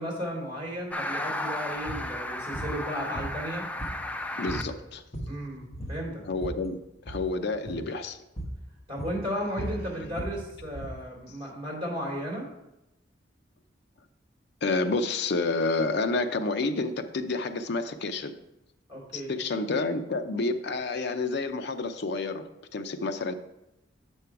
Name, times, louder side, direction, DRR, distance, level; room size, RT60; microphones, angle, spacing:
voice 1, 0.0-3.7 5.3-6.2 8.9-12.5 18.9-19.3, equal, 30° right, -2 dB, 2.5 m, -34 dB
sound 1, 0.9-4.6, left 1 dB, 10° left, 0.4 m, -34 dB
sound 2, 1.9-2.1 2.5-2.8 3.1-4.2 4.5-4.7 5.0-5.4 5.7-6.6 7.0-7.3 7.6-7.9 8.4-8.6 9.0-11.0, right 1 dB, 35° left, 1.2 m, -37 dB
voice 2, 4.4-5.0 6.2-6.8 7.1-8.2 14.6-18.3 19.1-22.5 22.7-23.3, left 3 dB, 60° left, 7 dB, 0.5 m, -29 dB
6.7 x 5.4 x 4.6 m, 0.89 s
head